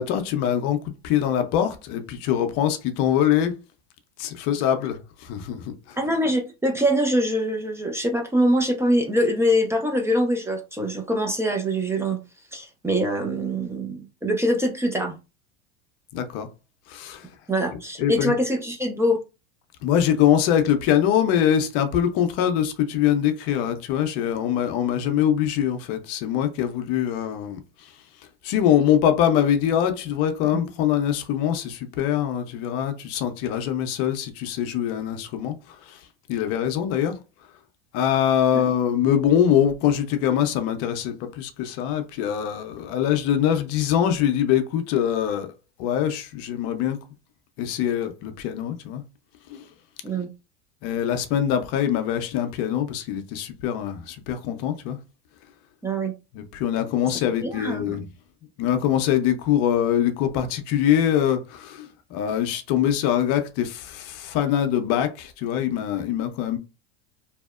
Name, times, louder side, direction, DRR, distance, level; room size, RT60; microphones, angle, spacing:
voice 1, 0.0-3.6 4.2-6.0 16.1-16.5 16.9-17.3 18.0-18.3 19.8-27.9 28.4-36.0 36.3-37.2 37.9-45.5 45.8-47.0 47.6-49.0 49.5-49.7 50.8-55.0 56.3-58.0 58.6-66.6, left 10 dB, 50° left, 0.6 m, -23 dB
voice 2, 6.0-12.2 12.5-15.1 17.5-19.2 50.0-50.3 55.8-56.1 57.4-58.0, equal, 10° right, 0.5 m, -24 dB
2.7 x 2.0 x 2.3 m
hypercardioid pair, 95°, 31 cm